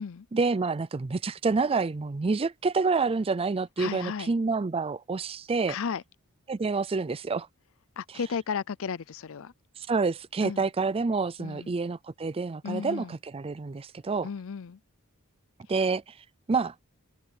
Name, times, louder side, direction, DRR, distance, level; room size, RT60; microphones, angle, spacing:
voice 1, 0.3-5.8 6.5-7.5 9.8-14.3 15.7-16.1 16.5-16.7, right 4 dB, 25° right, 0.4 m, -28 dB
voice 2, 3.8-4.3 5.7-6.0 8.0-9.5 10.4-10.7 11.4-11.7 12.6-13.2 14.2-14.8, left 6 dB, 65° left, 0.5 m, -34 dB
open air
head